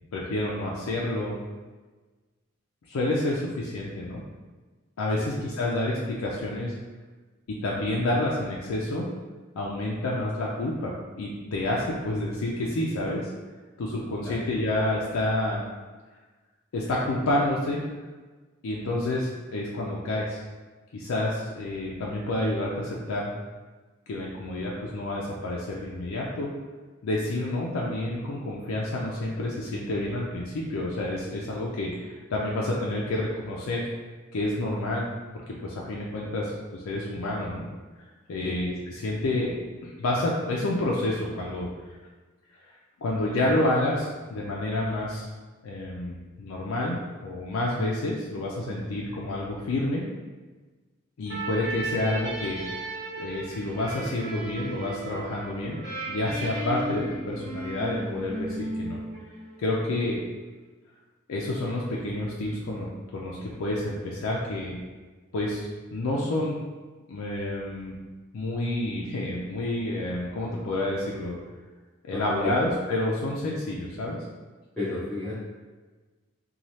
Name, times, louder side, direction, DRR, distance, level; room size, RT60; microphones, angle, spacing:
voice 1, 0.1-1.4 2.9-4.2 5.0-6.7 7.5-9.1 9.6-13.3 13.8-15.6 16.7-17.8 18.6-20.4 20.9-23.3 24.1-26.5 27.0-33.8 34.3-35.0 35.5-37.7 38.3-39.5 39.8-41.9 43.0-45.3 45.6-50.1 51.2-52.6 53.2-55.8 56.1-59.0 59.6-60.2 61.3-64.8 65.3-66.6 67.1-67.9 68.3-71.4 72.0-74.2, left 1 dB, 80° left, -3 dB, 0.4 m, -29 dB
sound 1, 51.3-59.7, right 1 dB, 50° right, 1.2 m, -35 dB
voice 2, 72.1-72.5 74.8-75.4, left 2 dB, 5° left, -14 dB, 0.6 m, -32 dB
3.1 x 2.3 x 2.7 m, 1.3 s
head